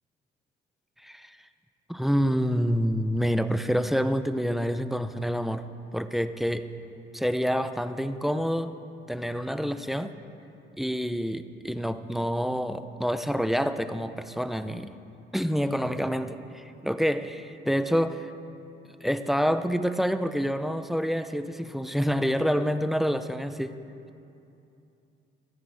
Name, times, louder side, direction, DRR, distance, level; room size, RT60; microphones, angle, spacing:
voice 1, 1.0-1.4 1.9-5.7 5.9-6.7 7.1-8.8 9.1-10.1 10.8-14.9 15.3-18.3 19.0-23.8, equal, ahead, 10 dB, 0.6 m, -27 dB
28.0 x 10.5 x 3.5 m, 2.7 s
cardioid pair, 90°, 20 cm